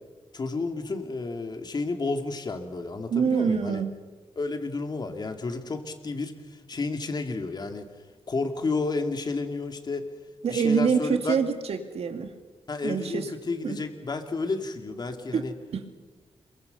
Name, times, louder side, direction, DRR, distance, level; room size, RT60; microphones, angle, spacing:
voice 1, 0.3-3.8 4.4-7.9 8.3-10.1 10.5-11.4 12.7-15.5, left 3 dB, 40° left, 5 dB, 2.6 m, -31 dB
voice 2, 3.1-4.0 10.4-12.3 12.8-13.3 13.6-13.8 15.3-15.9, right 6 dB, 75° right, 6 dB, 2.3 m, -26 dB
27.5 x 23.5 x 6.8 m, 1.3 s
wide cardioid pair, 115°, 11 cm